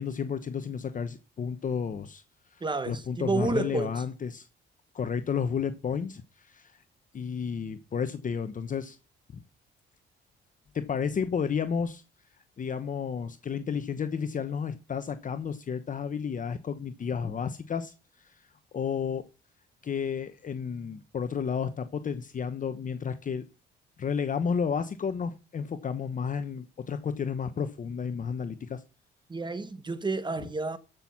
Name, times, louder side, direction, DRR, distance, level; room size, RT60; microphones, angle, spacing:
voice 1, 0.0-2.2 2.5-4.5 4.9-6.8 7.1-9.0 9.3-9.4 10.7-12.0 12.6-18.4 18.7-19.2 19.8-23.4 24.0-28.8, left 6 dB, 40° left, 1.0 m, -32 dB
voice 2, 2.6-3.9 29.3-30.8, right 3 dB, 25° right, 1.1 m, -30 dB
13.5 x 6.2 x 5.8 m
cardioid pair, 90°, 20 cm